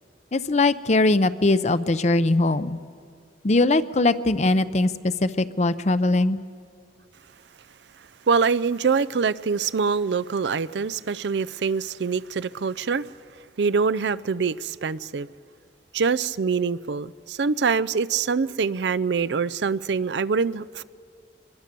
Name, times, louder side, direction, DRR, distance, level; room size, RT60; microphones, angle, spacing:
voice 1, 0.3-2.8 3.4-4.9 5.2-6.4, left 2 dB, 40° left, 0.6 m, -21 dB
voice 2, 8.3-13.1 13.6-15.3 15.9-20.8, right 5 dB, 75° right, 0.5 m, -24 dB
25.0 x 21.5 x 6.8 m
head